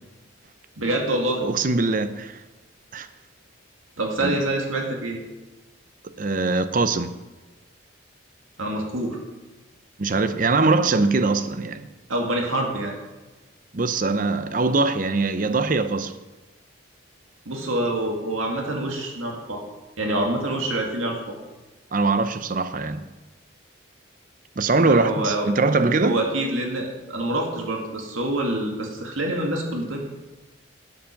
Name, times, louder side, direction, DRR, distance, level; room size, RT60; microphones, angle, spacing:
voice 1, 0.8-1.4 4.0-5.2 8.6-9.2 12.1-12.9 17.5-19.6 20.0-21.3 24.8-25.5 26.0-30.0, right 1 dB, 85° right, 2.3 m, -26 dB
voice 2, 1.4-2.4 2.9-3.1 4.2-4.4 6.2-7.1 10.0-11.9 13.7-16.2 21.9-23.0 24.6-26.2, right 3 dB, 40° right, 0.6 m, -22 dB
11.5 x 7.9 x 5.9 m
head